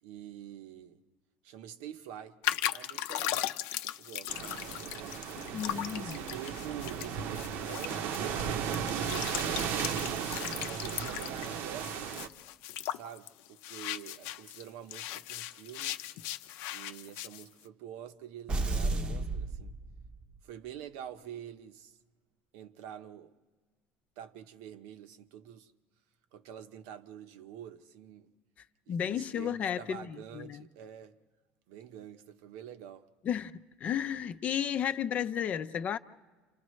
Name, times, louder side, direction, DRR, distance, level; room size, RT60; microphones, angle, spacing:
voice 1, 0.0-1.0 1.4-2.4 2.7-3.5 4.0-4.9 5.9-12.2 12.9-16.0 16.7-19.8 20.4-22.0 22.5-23.3 24.2-25.7 26.3-28.3 28.9-31.2 31.7-33.1, right 10 dB, 85° right, 1.1 m, -47 dB
sound 1, 2.4-14.7 14.9-17.4, left 14 dB, 75° left, 0.7 m, -38 dB
sound 2, 4.3-12.3, right 8 dB, 60° right, 0.9 m, -35 dB
voice 2, 5.5-6.2 28.9-30.6 33.2-33.5 33.8-36.0, left 9 dB, 35° left, 0.6 m, -33 dB
sound 3, 18.5-20.4, right 2 dB, 25° right, 0.8 m, -32 dB
29.5 x 28.0 x 3.2 m
cardioid pair, 160°, 4 cm